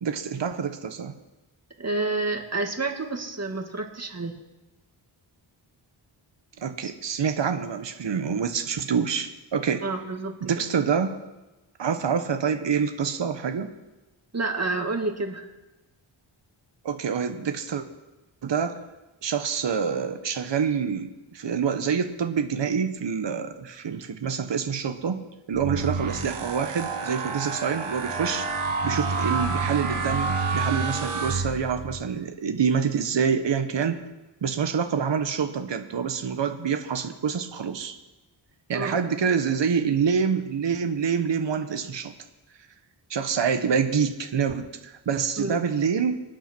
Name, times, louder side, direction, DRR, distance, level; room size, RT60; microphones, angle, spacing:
voice 1, 0.0-1.1 6.6-9.8 10.5-11.2 11.8-13.7 16.8-17.8 18.4-18.8 19.2-28.5 28.8-34.0 34.4-37.9 38.7-42.1 43.1-46.1, right 6 dB, 60° right, 7 dB, 1.2 m, -26 dB
voice 2, 1.8-4.3 6.8-6.9 9.8-10.7 14.3-15.5 38.7-39.0 45.4-45.6, right 3 dB, 30° right, 4 dB, 2.1 m, -29 dB
sound 1, 25.5-32.0, right 4 dB, 90° right, 2.1 m, -29 dB
25.5 x 9.2 x 4.5 m, 1.1 s
cardioid pair, 75°, 49 cm